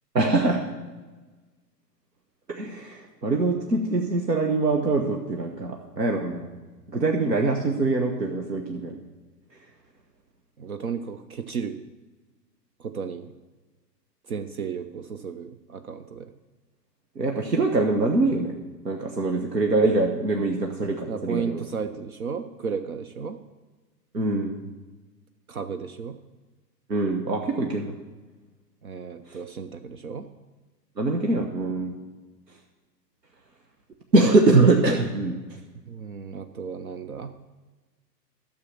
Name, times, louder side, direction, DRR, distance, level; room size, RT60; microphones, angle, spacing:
voice 1, 0.1-0.6 2.5-6.5 6.9-9.0 17.1-18.6 18.8-21.6 24.1-24.6 26.9-27.9 29.3-29.4 31.0-31.9 34.1-35.4, right 2 dB, 75° right, 2 dB, 1.3 m, -23 dB
voice 2, 10.6-11.8 12.8-13.3 14.2-16.3 21.1-23.4 25.5-26.2 28.8-30.3 35.8-37.3, right 6 dB, 60° right, 9 dB, 0.8 m, -34 dB
12.5 x 6.9 x 5.9 m, 1.3 s
figure-of-eight pair, 115°, 50 cm